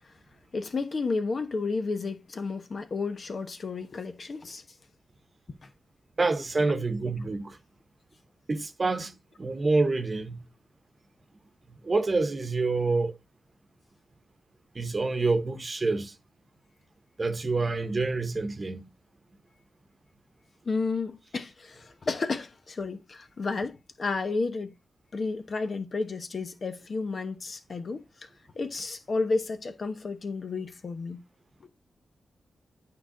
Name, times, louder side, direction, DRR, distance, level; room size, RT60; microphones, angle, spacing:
voice 1, 0.5-4.6 5.6-5.7 20.6-24.7 25.1-28.0 28.5-31.2 31.6-31.7, left 4 dB, 55° left, 1.1 m, -32 dB
voice 2, 6.2-7.6 8.5-10.5 11.8-13.1 14.7-16.1 17.2-18.9, right 3 dB, 40° right, 1.0 m, -27 dB
9.0 x 4.9 x 3.8 m
cardioid pair, 70°, 0 cm